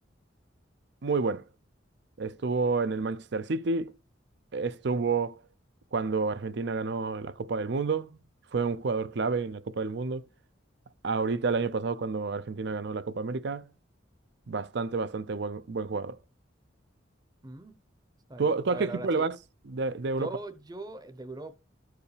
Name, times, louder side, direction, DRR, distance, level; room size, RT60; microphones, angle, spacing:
voice 1, 1.0-1.4 2.2-3.9 4.5-5.4 5.9-8.2 8.5-10.2 11.0-13.7 14.5-16.2 18.4-19.4 19.7-20.3, right 4 dB, 60° right, 0.5 m, -29 dB
voice 2, 17.4-17.8 18.3-19.3 20.2-21.6, right 2 dB, 20° right, 0.7 m, -40 dB
14.0 x 4.8 x 3.3 m
head